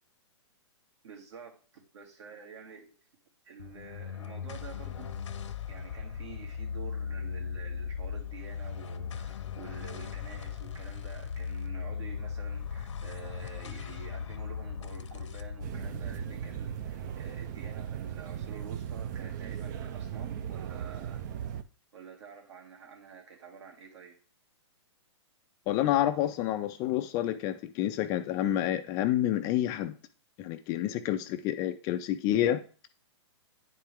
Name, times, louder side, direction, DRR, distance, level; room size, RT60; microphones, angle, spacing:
voice 1, 1.0-3.0 3.4-5.2 5.7-21.2 21.9-24.2, right 6 dB, 65° right, 2.6 m, -48 dB
sound 1, 3.6-18.2, left 7 dB, 80° left, 0.9 m, -38 dB
sound 2, 15.6-21.6, right 9 dB, 40° right, 0.5 m, -37 dB
voice 2, 25.7-29.9 30.4-32.6, left 12 dB, 25° left, 0.4 m, -28 dB
9.9 x 4.5 x 3.6 m
hypercardioid pair, 150°, 15 cm